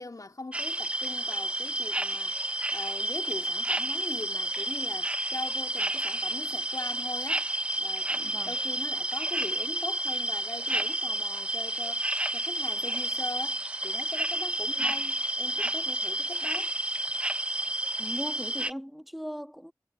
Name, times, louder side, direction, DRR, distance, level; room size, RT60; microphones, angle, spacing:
voice 1, 0.0-16.8, left 2 dB, 55° left, 3.5 m, -41 dB
sound 1, 0.5-18.7, right 1 dB, 15° right, 0.8 m, -30 dB
voice 2, 8.2-8.5 14.8-14.9 18.0-19.7, equal, ahead, 2.2 m, -39 dB
wide cardioid pair, 55°, 7 cm